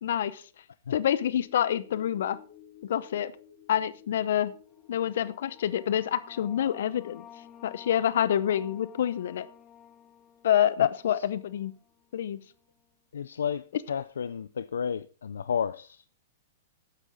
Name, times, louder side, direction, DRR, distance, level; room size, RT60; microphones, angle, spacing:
voice 1, 0.0-0.4 0.9-2.4 2.9-3.3 3.7-4.5 4.9-7.2 7.6-9.5 10.4-11.7 12.1-12.4, left 10 dB, 70° left, 0.8 m, -27 dB
sound 1, 0.9-11.6 11.9-12.0, left 10 dB, 40° left, 2.9 m, -57 dB
sound 2, 4.8-12.0, left 9 dB, 20° left, 1.0 m, -52 dB
voice 2, 10.8-11.2 13.1-16.0, left 7 dB, 90° left, 0.4 m, -32 dB
12.5 x 8.1 x 3.9 m
hypercardioid pair, 135°, 0 cm